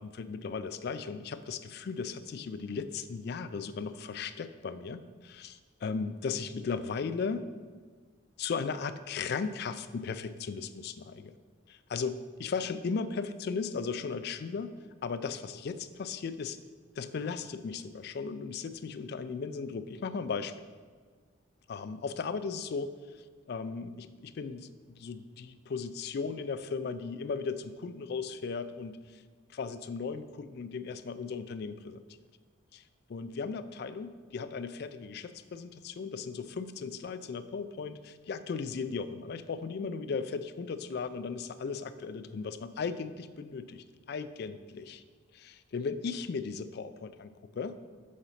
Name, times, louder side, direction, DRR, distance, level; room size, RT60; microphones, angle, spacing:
voice 1, 0.0-7.4 8.4-11.3 11.7-14.7 15.0-16.6 17.0-20.6 21.7-22.9 23.5-29.2 29.5-32.0 32.7-32.8 33.1-45.0 45.3-47.8, left 5 dB, 55° left, 11 dB, 0.3 m, -36 dB
6.4 x 3.9 x 5.6 m, 1.5 s
head